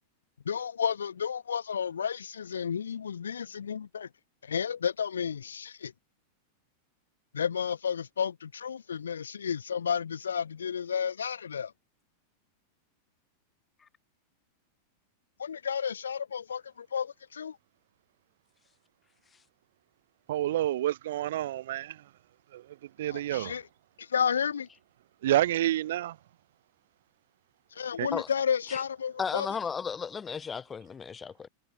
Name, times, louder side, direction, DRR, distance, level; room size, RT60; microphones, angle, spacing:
voice 1, 0.4-4.1 4.4-5.9 7.3-11.7 15.4-17.6 23.1-23.6 24.0-24.7 27.7-29.5, left 7 dB, 70° left, 7.6 m, -32 dB
voice 2, 20.3-22.1 22.5-23.6 25.2-26.2 28.0-28.1, right 13 dB, 55° right, 3.2 m, -29 dB
voice 3, 29.2-31.5, left 6 dB, 20° left, 3.8 m, -34 dB
figure-of-eight pair, 90°, 0 cm